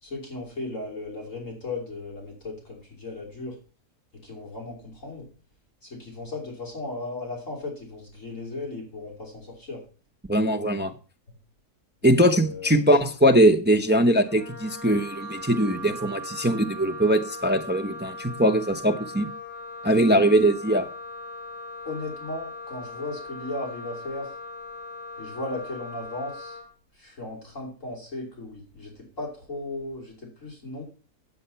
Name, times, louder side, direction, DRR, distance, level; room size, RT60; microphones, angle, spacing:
voice 1, 0.0-3.6 4.2-5.3 5.8-9.8 12.0-12.9 21.9-24.3 25.2-26.6 26.9-30.8, left 2 dB, 50° left, -2 dB, 3.7 m, -36 dB
voice 2, 10.3-10.9 12.0-19.3 19.8-20.9, right 1 dB, 15° right, 5 dB, 0.4 m, -21 dB
Wind instrument woodwind instrument, 14.2-26.7, left 1 dB, 80° left, 4.0 m, -39 dB
9.3 x 8.0 x 5.6 m, 0.37 s
omnidirectional pair, 1.7 m